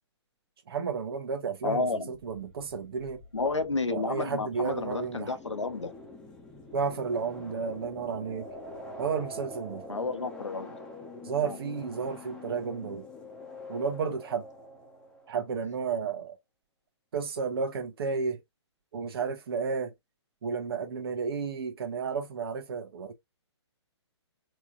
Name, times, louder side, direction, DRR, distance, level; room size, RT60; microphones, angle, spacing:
voice 1, 0.7-3.2 3.9-5.4 6.7-8.5 9.0-9.8 11.2-13.0 13.7-14.4 15.3-16.4 17.1-18.4 18.9-19.9 20.4-23.1, right 5 dB, 55° right, 1.6 m, -32 dB
voice 2, 1.6-2.1 3.3-5.9 9.9-10.7 11.4-11.6, left 3 dB, 90° left, 1.1 m, -31 dB
sound 1, 2.1-15.5, left 2 dB, 5° left, 1.2 m, -45 dB
4.4 x 3.3 x 2.5 m
figure-of-eight pair, 130°, 15 cm